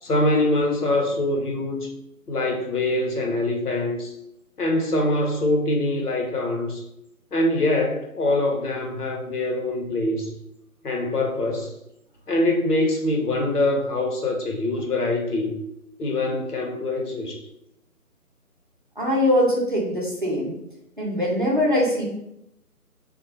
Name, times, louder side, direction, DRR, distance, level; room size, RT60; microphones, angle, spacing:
voice 1, 0.0-1.9 2.3-4.1 4.6-6.8 7.3-10.3 10.8-11.7 12.3-15.5 16.0-17.4, left 2 dB, 85° left, 2 dB, 0.8 m, -24 dB
voice 2, 19.0-20.6 21.0-22.0, left 1 dB, 35° right, -4 dB, 0.5 m, -22 dB
2.2 x 2.0 x 3.0 m, 0.82 s
figure-of-eight pair, 155°, 44 cm